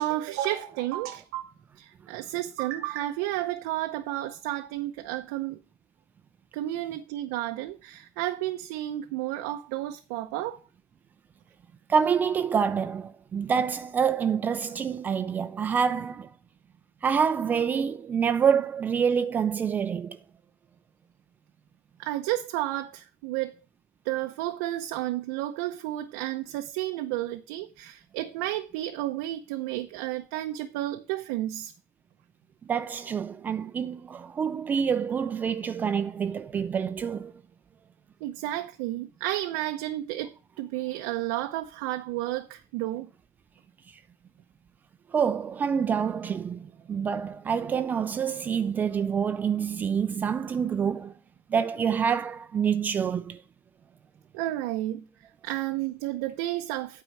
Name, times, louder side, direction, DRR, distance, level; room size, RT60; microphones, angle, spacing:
voice 1, 0.0-5.6 6.5-10.6 22.0-23.6 24.0-31.7 38.2-43.1 54.3-55.0 55.4-57.0, right 15 dB, 85° right, 0.7 m, -32 dB
voice 2, 11.9-16.3 17.0-20.2 32.7-37.3 43.9-44.0 45.1-51.2 51.5-53.4, right 7 dB, 25° right, 0.4 m, -27 dB
9.0 x 4.5 x 6.9 m
cardioid pair, 145°, 7 cm